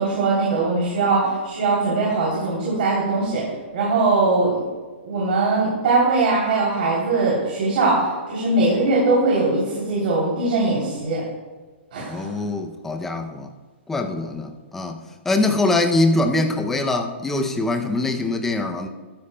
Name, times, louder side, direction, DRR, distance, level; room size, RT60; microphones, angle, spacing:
voice 1, 0.0-3.4 3.7-4.6 5.0-11.2 11.9-12.3, right 3 dB, 50° right, -6 dB, 3.1 m, -21 dB
voice 2, 12.0-13.5 13.9-18.9, left 2 dB, 5° left, 5 dB, 0.5 m, -23 dB
14.5 x 12.5 x 2.2 m, 1.3 s
hypercardioid pair, 170°, 7 cm